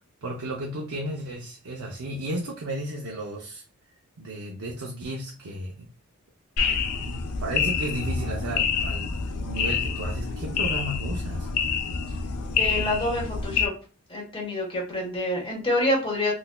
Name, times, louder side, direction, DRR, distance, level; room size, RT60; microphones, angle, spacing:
voice 1, 0.2-3.6 4.2-5.9 7.0-11.5, right 1 dB, 70° right, -1 dB, 0.6 m, -33 dB
sound 1, 6.6-13.7, left 5 dB, 90° left, 0.5 m, -27 dB
voice 2, 12.5-13.7 14.1-16.3, left 1 dB, 25° left, -2 dB, 1.3 m, -27 dB
3.9 x 2.6 x 2.2 m, 0.36 s
head